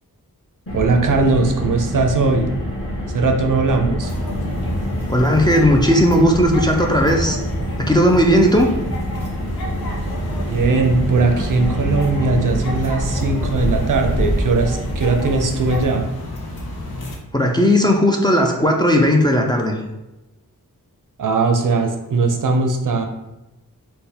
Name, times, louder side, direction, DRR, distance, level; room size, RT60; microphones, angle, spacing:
Car, 0.7-15.8, equal, 40° left, 1.3 m, -25 dB
voice 1, 0.7-2.5 3.1-4.1 10.5-16.0 21.2-23.0, right 3 dB, 60° right, 4 dB, 0.5 m, -19 dB
sound 1, 4.0-17.2, left 1 dB, 80° left, 0.7 m, -32 dB
voice 2, 5.1-7.4 7.8-8.7 17.3-19.8, equal, 10° left, 0 dB, 0.4 m, -16 dB
3.4 x 2.2 x 4.1 m, 0.99 s
wide cardioid pair, 85°, 36 cm